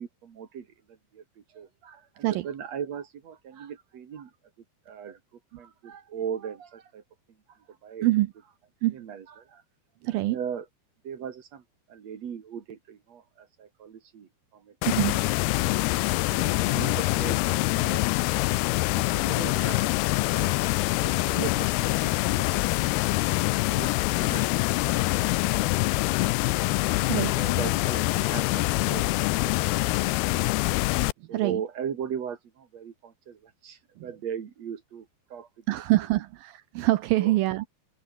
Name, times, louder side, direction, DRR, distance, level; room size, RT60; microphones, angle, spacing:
voice 1, 0.0-4.3 4.9-5.2 5.5-7.0 7.5-8.1 8.9-9.6 10.1-10.7 11.0-14.8 15.6-15.8 16.3-18.0 18.9-19.9 20.2-20.5 21.0-23.4 23.7-26.1 26.4-26.5 27.1-30.6 31.3-35.8 37.2-37.3, right 8 dB, 45° right, 2.6 m, -39 dB
voice 2, 10.0-10.4 14.9-15.2 27.1-27.3 31.3-31.6 35.7-37.7, right 17 dB, 90° right, 2.0 m, -24 dB
sound 1, 14.8-31.1, left 22 dB, 90° left, 2.3 m, -25 dB
open air
omnidirectional pair, 5.1 m